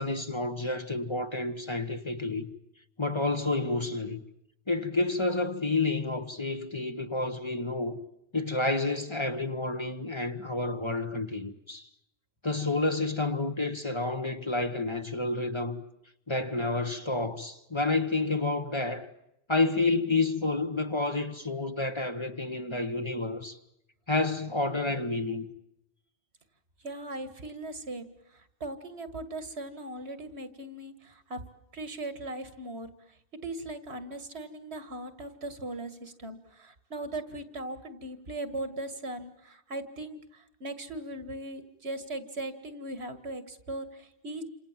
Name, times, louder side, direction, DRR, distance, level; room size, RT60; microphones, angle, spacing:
voice 1, 0.0-2.5 3.0-4.2 4.7-8.0 8.3-11.9 12.4-15.8 16.3-19.1 19.5-23.6 24.1-25.5, left 3 dB, 25° left, 1.3 m, -29 dB
voice 2, 26.8-28.1 28.6-31.4 31.7-32.9 33.4-44.4, right 2 dB, 85° right, 2.3 m, -39 dB
28.5 x 26.5 x 7.5 m
omnidirectional pair, 1.1 m